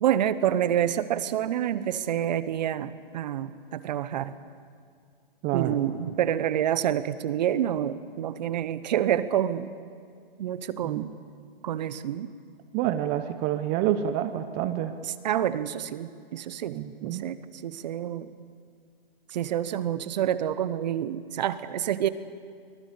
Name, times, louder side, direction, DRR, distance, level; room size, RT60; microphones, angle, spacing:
voice 1, 0.0-4.4 5.5-9.7 10.4-11.1 11.6-12.3 15.2-18.3 19.3-22.1, right 10 dB, 45° right, 15 dB, 1.1 m, -28 dB
voice 2, 5.4-5.8 10.8-11.1 12.7-15.0 16.7-17.3, right 11 dB, 20° right, 9 dB, 0.7 m, -28 dB
24.5 x 18.5 x 8.5 m, 2.2 s
hypercardioid pair, 145°, 30 cm